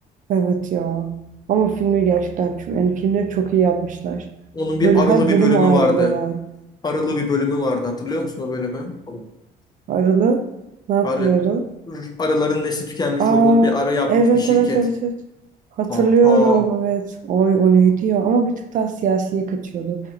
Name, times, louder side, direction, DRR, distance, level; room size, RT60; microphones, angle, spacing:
voice 1, 0.3-1.1 1.5-4.2 4.8-6.4 9.9-10.5 10.9-11.7 13.2-13.7 14.1-15.1 15.8-20.0, right 5 dB, 50° right, 6 dB, 0.4 m, -18 dB
voice 2, 4.5-6.2 6.8-9.2 11.0-11.3 11.9-14.8 15.9-16.6, left 2 dB, 25° left, 3 dB, 0.5 m, -22 dB
4.0 x 2.4 x 2.7 m, 0.92 s
cardioid pair, 110°, 17 cm